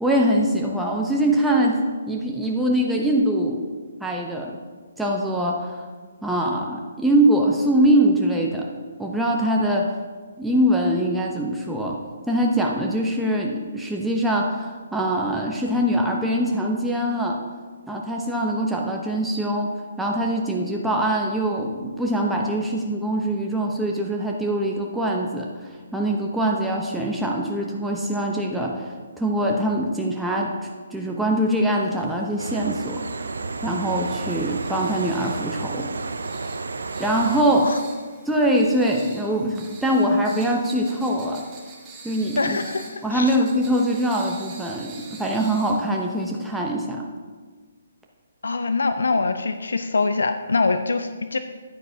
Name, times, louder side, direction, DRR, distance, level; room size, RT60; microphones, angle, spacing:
voice 1, 0.0-3.6 4.0-4.5 5.0-5.8 6.2-8.7 9.0-9.9 10.4-12.0 12.3-17.4 17.9-19.7 20.0-25.5 25.9-30.5 30.9-33.1 33.6-35.9 37.0-37.7 38.3-41.4 42.0-42.6 43.0-44.9 45.2-47.0, right 1 dB, 5° right, -2 dB, 0.8 m, -23 dB
sound 1, 31.8-46.7, right 4 dB, 20° right, 2.0 m, -46 dB
sound 2, 32.4-37.4, right 3 dB, 80° right, 0.5 m, -31 dB
voice 2, 42.4-43.4 48.4-51.4, left 3 dB, 80° left, 9 dB, 0.5 m, -24 dB
9.3 x 9.2 x 2.8 m, 1.5 s
hypercardioid pair, 145°, 0 cm